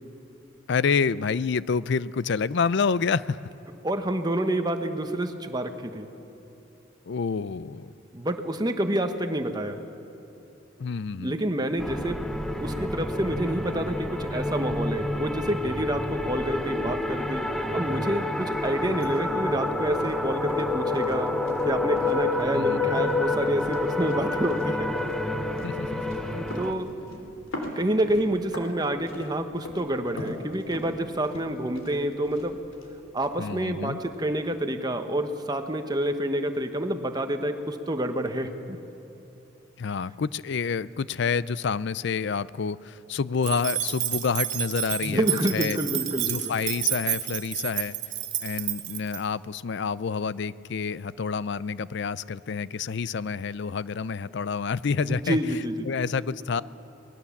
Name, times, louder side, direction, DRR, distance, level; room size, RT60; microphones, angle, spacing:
voice 1, 0.7-3.4 7.1-7.9 10.8-11.4 22.5-23.0 25.6-26.2 33.4-34.0 39.8-45.3 45.5-45.8 46.2-47.9 48.4-55.4 55.9-56.6, left 5 dB, 60° left, 18 dB, 0.5 m, -28 dB
voice 2, 3.8-6.1 8.1-9.8 11.2-12.2 12.6-17.5 17.7-21.4 21.6-24.9 26.2-26.9 27.8-32.6 33.1-38.8 45.0-46.5 55.1-55.9, right 1 dB, 20° right, 7 dB, 1.1 m, -28 dB
sound 1, 11.8-26.7, left 2 dB, 5° left, 0.8 m, -28 dB
sound 2, 18.4-34.3, left 1 dB, 85° left, 3.3 m, -44 dB
sound 3, 43.4-49.2, right 12 dB, 65° right, 2.1 m, -30 dB
24.0 x 19.5 x 7.2 m, 2.9 s
head